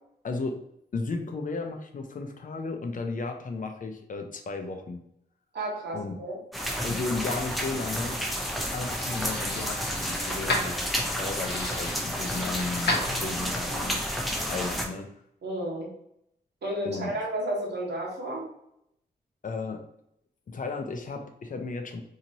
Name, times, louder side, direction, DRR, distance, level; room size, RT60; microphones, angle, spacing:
voice 1, 0.2-0.6 0.9-5.0 5.9-6.1 6.8-8.2 8.7-10.8 11.1-14.0 14.4-15.1 16.8-17.1 19.4-19.9 20.5-22.0, left 3 dB, 50° left, 5 dB, 0.5 m, -34 dB
voice 2, 5.5-6.4 15.4-15.9 16.6-18.4, right 1 dB, 75° right, -3 dB, 1.1 m, -32 dB
sound 1, 6.5-14.9, equal, ahead, 0.6 m, -31 dB
sound 2, 8.7-13.7, left 2 dB, 80° left, 0.8 m, -35 dB
2.9 x 2.8 x 2.7 m, 0.75 s
wide cardioid pair, 105°, 18 cm